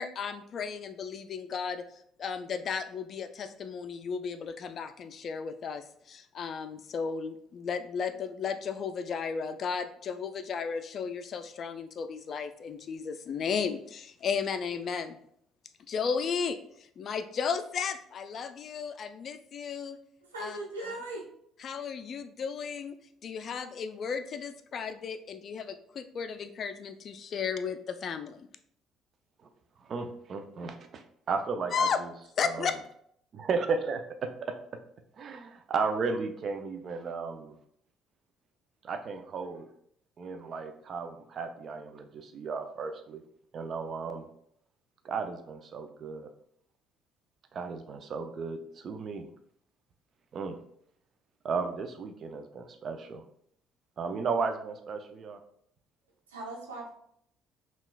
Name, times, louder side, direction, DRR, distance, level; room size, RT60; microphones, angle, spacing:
voice 1, 0.0-1.8 2.2-15.2 15.9-16.6 17.0-20.0 20.4-20.6 21.6-22.9 23.2-28.5 31.7-32.0 32.4-32.7, left 6 dB, 50° left, 10 dB, 0.3 m, -34 dB
voice 2, 20.3-21.2 56.3-56.9, right 1 dB, 85° right, -1 dB, 0.7 m, -38 dB
voice 3, 29.8-32.1 32.4-32.7 33.3-34.6 35.2-37.6 38.8-39.7 40.2-43.2 43.5-44.3 45.0-46.3 47.5-49.3 50.3-50.6 51.4-53.2 54.0-55.4, right 4 dB, 50° right, 8 dB, 0.5 m, -34 dB
5.5 x 2.3 x 2.2 m, 0.69 s
hypercardioid pair, 55°, 0 cm